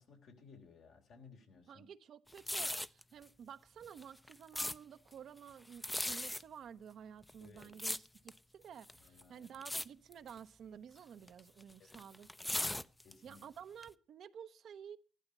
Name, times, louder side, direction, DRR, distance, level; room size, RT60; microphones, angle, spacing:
voice 1, 0.0-1.9 7.4-7.8 9.0-9.5 11.8-12.0 13.0-13.4, left 4 dB, 75° left, 3.7 m, -59 dB
voice 2, 1.7-12.3 12.5-12.7 13.2-15.0, right 8 dB, 70° right, 0.9 m, -52 dB
sound 1, 2.3-3.0 3.8-4.8 5.7-6.4 7.2-8.4 8.8-9.2 9.5-9.9 10.1-10.4 11.3-13.4 13.8-13.9, left 1 dB, 10° left, 0.7 m, -38 dB
15.0 x 12.0 x 5.4 m
supercardioid pair, 65°, 0 cm